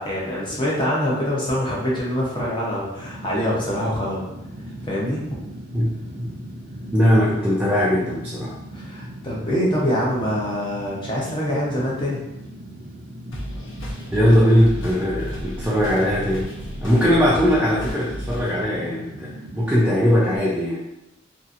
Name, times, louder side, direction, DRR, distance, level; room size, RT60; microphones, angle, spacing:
voice 1, 0.0-4.2 4.8-5.2 8.7-12.2, equal, 25° left, -5 dB, 0.7 m, -24 dB
Fire, 2.9-20.4, right 1 dB, 60° right, 0.5 m, -38 dB
voice 2, 5.7-6.3 6.9-8.5 14.1-16.5 16.8-20.8, equal, 10° right, -6 dB, 0.3 m, -20 dB
sound 1, 13.3-18.7, equal, 75° left, 0.8 m, -33 dB
2.8 x 2.5 x 2.5 m, 0.93 s
head